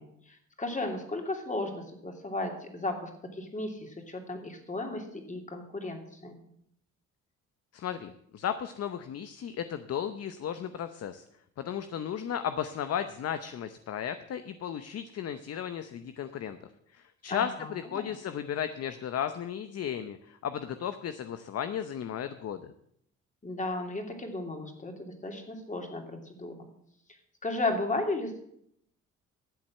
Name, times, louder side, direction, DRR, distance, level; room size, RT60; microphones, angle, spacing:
voice 1, 0.0-6.4 17.3-18.1 23.4-26.6 27.4-28.4, left 2 dB, 25° left, 3 dB, 2.9 m, -35 dB
voice 2, 7.7-11.2 11.6-16.6 16.9-22.7, left 9 dB, 55° left, 10 dB, 0.8 m, -35 dB
13.0 x 7.6 x 7.5 m, 0.72 s
cardioid pair, 90°, 30 cm